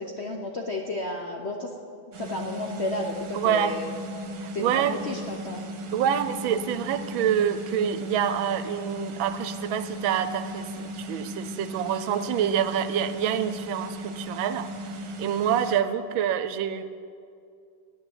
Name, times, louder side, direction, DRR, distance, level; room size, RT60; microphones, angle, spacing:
voice 1, 0.0-1.7 2.2-3.9 4.5-5.6, left 2 dB, 55° left, 1 dB, 0.7 m, -32 dB
sound 1, 2.1-15.8, equal, 60° right, 1.6 m, -37 dB
voice 2, 3.3-3.7 4.4-5.0 5.9-14.7 15.2-16.8, right 9 dB, 80° right, 12 dB, 1.4 m, -26 dB
9.5 x 9.2 x 8.1 m, 2.3 s
omnidirectional pair, 2.2 m